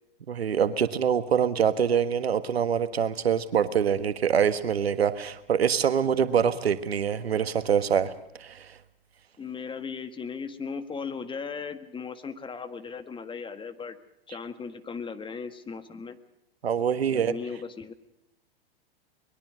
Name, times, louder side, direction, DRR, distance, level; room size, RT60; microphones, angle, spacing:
voice 1, 0.3-8.1 8.4-8.7 16.6-17.3, right 8 dB, 85° right, 12 dB, 1.5 m, -25 dB
voice 2, 9.4-14.0 14.3-16.2 17.1-17.9, left 5 dB, 15° left, 10 dB, 1.7 m, -37 dB
23.5 x 21.5 x 6.4 m, 0.84 s
hypercardioid pair, 110°, 30 cm